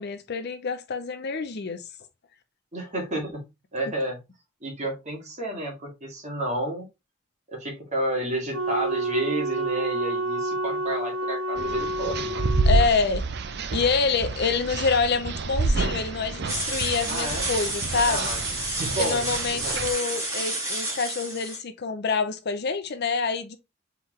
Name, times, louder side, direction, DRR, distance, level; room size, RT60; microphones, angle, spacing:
voice 1, 0.0-1.8 12.7-13.3 13.7-18.3 19.0-23.6, left 5 dB, 50° left, 0.5 m, -26 dB
voice 2, 2.7-3.4 3.7-4.2 4.6-6.9 7.5-12.4 17.1-17.4 18.1-18.4 18.8-19.8, right 1 dB, 35° right, 1.9 m, -31 dB
Wind instrument woodwind instrument, 8.5-12.8, right 1 dB, 80° right, 1.3 m, -29 dB
sound 1, 11.6-19.9, right 3 dB, 55° right, 0.6 m, -28 dB
sound 2, 16.5-21.6, right 1 dB, 15° right, 2.4 m, -30 dB
4.4 x 3.9 x 3.0 m
head